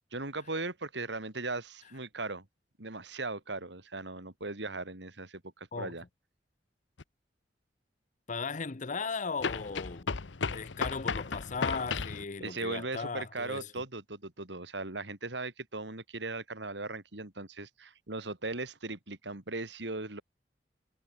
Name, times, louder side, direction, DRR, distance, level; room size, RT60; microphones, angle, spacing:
voice 1, 0.1-2.5 2.8-6.0 12.4-20.2, right 3 dB, 70° right, 3.1 m, -38 dB
sound 1, 7.0-7.1 9.4-12.2, left 5 dB, 85° left, 0.9 m, -34 dB
voice 2, 8.3-10.1 10.5-13.7, left 4 dB, 45° left, 0.8 m, -37 dB
head